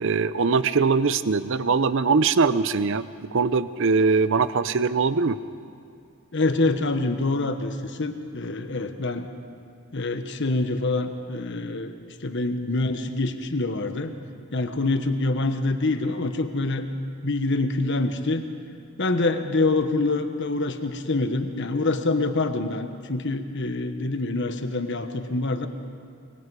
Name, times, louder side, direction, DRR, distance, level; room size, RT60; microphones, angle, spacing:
voice 1, 0.0-3.0 3.3-5.4, right 4 dB, 60° right, 14 dB, 0.6 m, -21 dB
voice 2, 6.3-9.3 9.9-11.9 12.2-14.1 14.5-16.9 17.2-18.4 19.0-25.7, left 2 dB, 55° left, 8 dB, 1.2 m, -25 dB
25.0 x 22.5 x 4.8 m, 2.4 s
head